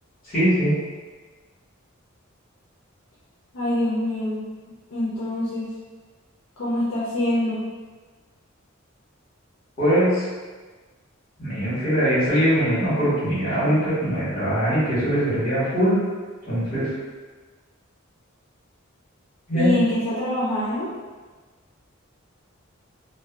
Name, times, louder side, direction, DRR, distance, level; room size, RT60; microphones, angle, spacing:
voice 1, 0.3-0.8 9.8-10.2 11.4-16.0 16.4-16.9 19.5-19.7, equal, 45° left, -10 dB, 1.4 m, -21 dB
voice 2, 3.5-4.4 4.9-5.7 6.6-7.6 19.5-20.9, left 1 dB, 80° left, -9 dB, 0.6 m, -24 dB
2.6 x 2.2 x 2.4 m, 1.3 s
head